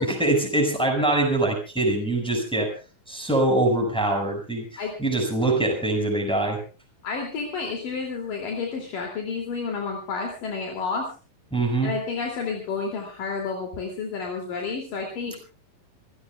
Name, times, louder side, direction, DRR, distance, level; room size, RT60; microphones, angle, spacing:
voice 1, 0.1-2.7 3.1-6.6 11.5-11.9, right 2 dB, ahead, 2 dB, 5.5 m, -23 dB
voice 2, 7.0-11.1 11.8-15.4, left 4 dB, 65° left, 1 dB, 4.4 m, -30 dB
27.5 x 16.0 x 2.4 m, 0.35 s
omnidirectional pair, 4.4 m